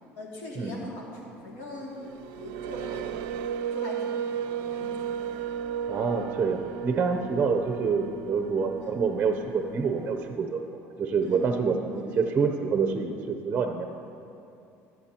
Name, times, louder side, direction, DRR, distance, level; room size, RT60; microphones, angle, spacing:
voice 1, 0.1-2.0 2.3-3.1 3.7-5.3 8.8-9.0 11.2-11.5 11.9-12.3, left 1 dB, 85° left, -3 dB, 2.5 m, -41 dB
sound 1, 1.9-10.4, right 8 dB, 85° right, 0.4 m, -35 dB
voice 2, 5.9-10.6 11.0-13.9, right 5 dB, 30° right, 5 dB, 0.7 m, -27 dB
21.0 x 7.5 x 2.9 m, 2.6 s
cardioid pair, 125°, 6 cm